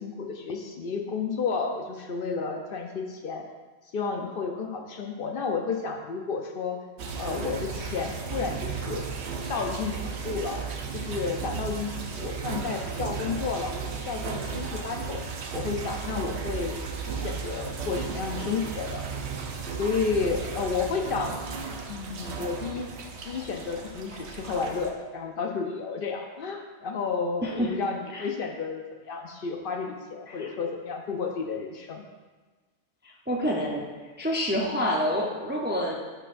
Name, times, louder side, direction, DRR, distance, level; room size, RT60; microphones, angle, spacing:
voice 1, 0.0-3.4 3.9-6.8 7.2-9.0 9.5-10.6 10.9-15.2 15.5-16.8 17.1-19.0 19.8-21.4 21.9-22.9 23.2-32.0, left 5 dB, 60° left, 3 dB, 0.7 m, -31 dB
sound 1, 7.0-24.9, right 5 dB, 75° right, 1.0 m, -35 dB
voice 2, 27.4-27.7 28.1-28.2 30.3-30.5 33.0-33.8 34.2-36.0, equal, 15° right, -2 dB, 0.4 m, -28 dB
11.5 x 4.4 x 2.5 m, 1.3 s
omnidirectional pair, 1.2 m